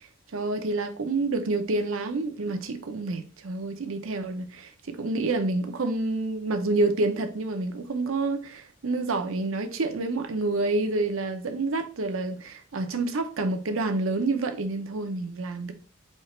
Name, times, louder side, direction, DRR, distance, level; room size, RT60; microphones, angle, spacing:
voice 1, 0.3-15.7, right 2 dB, 75° right, 0.6 m, -28 dB
4.5 x 2.8 x 3.2 m
head